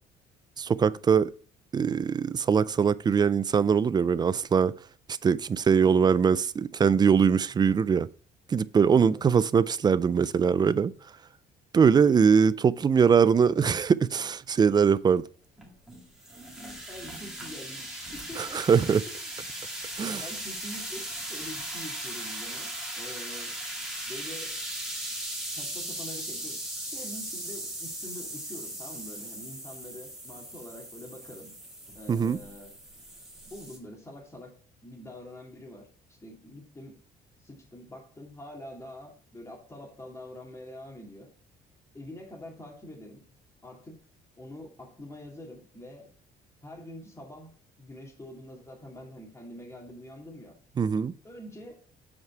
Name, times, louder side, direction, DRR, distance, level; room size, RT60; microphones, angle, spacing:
voice 1, 0.6-1.3 1.7-4.7 5.2-8.1 8.5-10.9 11.7-15.2 18.4-19.0 20.0-20.2 32.1-32.4 50.8-51.1, right 6 dB, 25° right, 0.3 m, -22 dB
sound 1, 15.6-33.8, right 1 dB, 5° right, 2.2 m, -38 dB
voice 2, 16.9-19.3 20.1-22.7 22.9-23.6 24.1-24.5 25.5-31.5 31.9-32.8 33.4-34.5 34.8-37.0 37.4-41.3 41.9-43.2 43.6-44.0 44.4-46.1 46.6-50.5 51.2-51.8, left 1 dB, 15° left, 2.5 m, -45 dB
7.3 x 4.9 x 4.5 m
cardioid pair, 110°, 17 cm